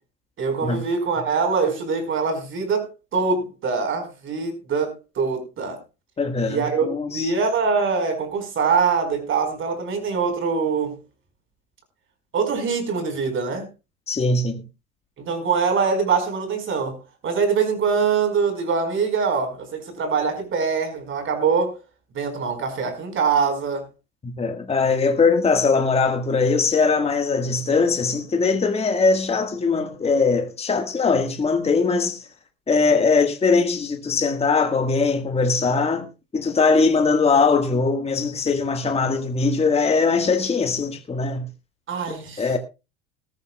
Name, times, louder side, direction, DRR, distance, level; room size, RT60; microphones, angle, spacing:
voice 1, 0.4-5.8 6.5-11.0 12.3-13.7 15.2-17.0 17.2-21.7 22.1-23.8 41.9-42.5, right 5 dB, 35° right, 4.8 m, -23 dB
voice 2, 6.2-7.3 14.1-14.6 24.2-32.2 32.7-36.1 36.3-41.5 42.1-42.6, left 4 dB, 20° left, 1.6 m, -21 dB
19.0 x 13.5 x 2.3 m
supercardioid pair, 100°, 33 cm